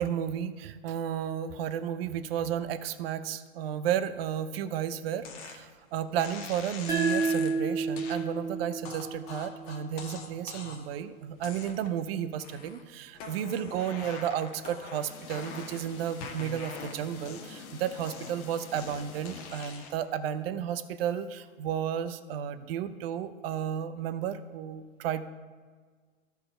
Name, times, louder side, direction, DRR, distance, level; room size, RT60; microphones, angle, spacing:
voice 1, 0.0-25.2, right 9 dB, 45° right, 12 dB, 0.6 m, -33 dB
sound 1, 5.2-5.6 6.2-7.6 8.0-8.2 8.8-11.0 11.4-12.0 12.4-12.8 13.1-15.9 16.2-17.7 18.0-20.1, left 5 dB, 30° left, 1.1 m, -44 dB
sound 2, 6.9-10.1, right 4 dB, 10° right, 1.2 m, -31 dB
sound 3, 15.0-20.0, left 6 dB, 75° left, 1.2 m, -49 dB
13.0 x 4.6 x 4.4 m, 1.5 s
hypercardioid pair, 115°, 43 cm